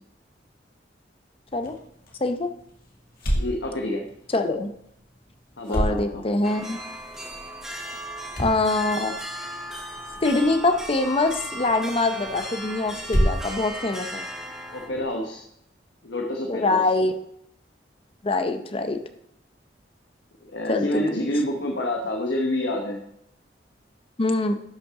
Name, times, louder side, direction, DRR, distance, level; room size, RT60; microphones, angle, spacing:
sound 1, 1.5-15.1, equal, 50° left, 2.2 m, -33 dB
voice 1, 3.4-4.0 5.6-6.2 14.7-15.4 16.0-16.8 20.4-23.0, left 1 dB, 80° left, 1 dB, 1.1 m, -28 dB
voice 2, 4.3-4.7 5.7-6.8 8.4-9.2 10.2-14.2 16.5-17.1 18.2-19.0 20.7-21.2 24.2-24.5, left 2 dB, 30° left, 8 dB, 0.7 m, -24 dB
sound 2, 6.4-14.9, right 1 dB, 5° right, 1.7 m, -36 dB
11.5 x 5.9 x 3.7 m, 0.74 s
head